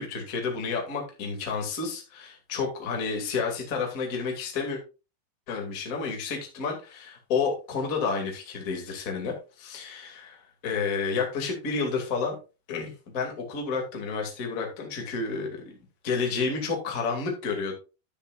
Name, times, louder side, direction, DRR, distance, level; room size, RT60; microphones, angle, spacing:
voice 1, 0.0-4.8 5.5-12.3 12.7-15.8 16.0-17.7, left 5 dB, 35° left, 1 dB, 1.4 m, -30 dB
10.0 x 10.0 x 2.4 m, 0.31 s
omnidirectional pair, 5.3 m